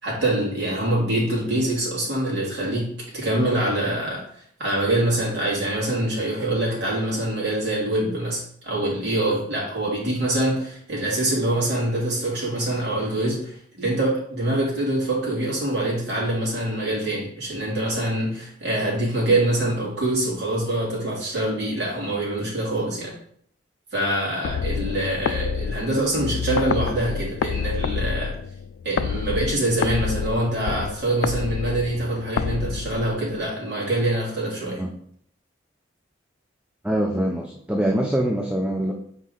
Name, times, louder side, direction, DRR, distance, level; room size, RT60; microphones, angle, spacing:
voice 1, 0.0-23.1 23.9-28.4 28.8-34.8, right 1 dB, 60° right, -5 dB, 2.7 m, -25 dB
sound 1, 24.4-33.5, left 6 dB, 80° left, 0.3 m, -28 dB
voice 2, 36.8-38.9, right 1 dB, 5° right, 1 dB, 0.5 m, -24 dB
6.6 x 4.2 x 3.8 m, 0.64 s
head